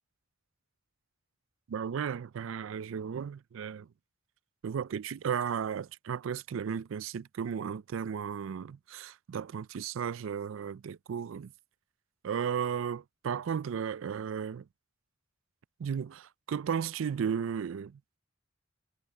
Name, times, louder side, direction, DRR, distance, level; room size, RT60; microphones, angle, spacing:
voice 1, 1.7-3.9 4.6-11.5 12.2-14.7 15.8-18.0, right 7 dB, 70° right, 0.4 m, -34 dB
head